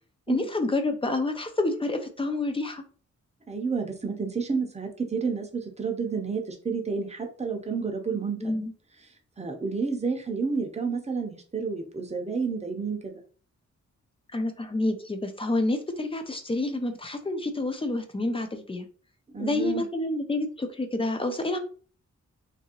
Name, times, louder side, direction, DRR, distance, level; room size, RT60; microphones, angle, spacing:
voice 1, 0.3-2.8 8.4-8.7 14.3-18.9 19.4-21.6, left 2 dB, 20° left, 7 dB, 0.3 m, -28 dB
voice 2, 3.5-8.5 9.4-13.1 19.3-19.9, right 5 dB, 20° right, 3 dB, 0.6 m, -30 dB
2.8 x 2.6 x 2.8 m, 0.40 s
wide cardioid pair, 130°, 30 cm